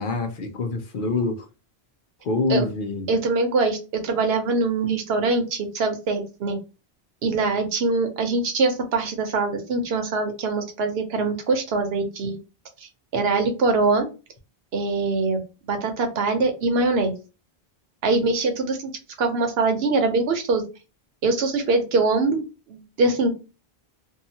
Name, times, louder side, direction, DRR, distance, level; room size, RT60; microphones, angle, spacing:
voice 1, 0.0-1.5 2.2-3.1, left 3 dB, 60° left, 0.7 m, -26 dB
voice 2, 3.1-6.6 7.2-12.4 12.8-14.1 14.7-17.1 18.0-18.9 19.2-20.6 21.2-23.3, right 3 dB, 75° right, 0.9 m, -23 dB
2.7 x 2.3 x 2.7 m
omnidirectional pair, 1.0 m